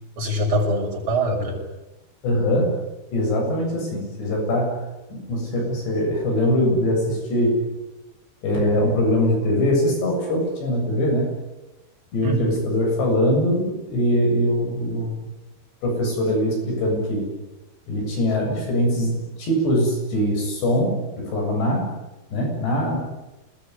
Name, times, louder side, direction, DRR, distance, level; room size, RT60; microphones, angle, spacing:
voice 1, 0.2-1.6 12.2-12.6, right 1 dB, 30° right, -1 dB, 7.2 m, -23 dB
voice 2, 2.2-2.8 3.1-4.8 5.1-7.6 8.4-11.3 12.1-15.3 15.8-17.3 17.9-21.9 22.3-23.0, equal, 70° left, 1 dB, 9.9 m, -22 dB
28.0 x 21.0 x 9.8 m, 1.0 s
omnidirectional pair, 5.1 m